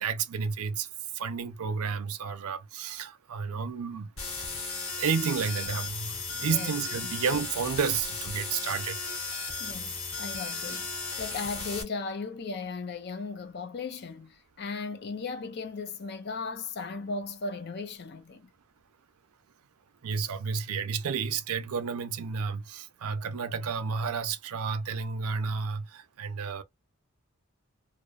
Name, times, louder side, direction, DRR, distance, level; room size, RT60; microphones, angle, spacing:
voice 1, 0.0-0.9 1.1-4.1 5.0-9.0 9.2-9.4 20.0-26.6, right 6 dB, 85° right, 0.5 m, -31 dB
sound 1, 4.2-11.8, left 4 dB, 65° left, 1.1 m, -35 dB
voice 2, 9.6-10.9 11.2-18.5, left 4 dB, 50° left, 0.4 m, -37 dB
2.7 x 2.0 x 2.3 m
head